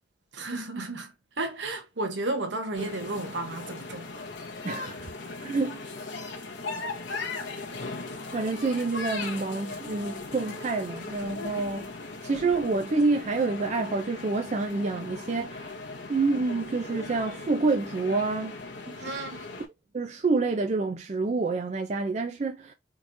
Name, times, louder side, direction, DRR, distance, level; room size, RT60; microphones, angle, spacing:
voice 1, 0.3-1.1 1.4-4.1 19.0-19.4, right 2 dB, 75° right, 0.8 m, -32 dB
sound 1, 2.7-19.7, left 3 dB, 80° left, 1.2 m, -38 dB
voice 2, 4.6-5.1 5.4-5.9 8.3-11.9 12.2-15.8 16.1-18.6 18.9-19.2 19.9-22.7, right 3 dB, 40° right, 0.4 m, -28 dB
3.7 x 3.0 x 2.6 m
head